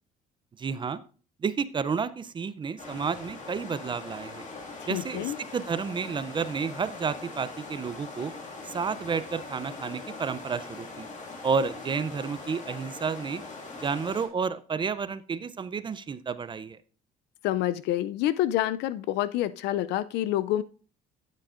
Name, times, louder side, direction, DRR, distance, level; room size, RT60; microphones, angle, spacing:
voice 1, 0.6-1.0 1.4-4.5 4.9-8.3 8.6-11.1 11.4-13.4 13.8-16.8, right 5 dB, 30° right, 15 dB, 0.5 m, -31 dB
sound 1, 2.8-14.3, left 3 dB, 45° left, 2.0 m, -42 dB
voice 2, 4.9-5.4 17.4-20.6, left 13 dB, 80° left, 15 dB, 0.4 m, -27 dB
12.0 x 7.5 x 2.5 m, 0.40 s
cardioid pair, 110°, 17 cm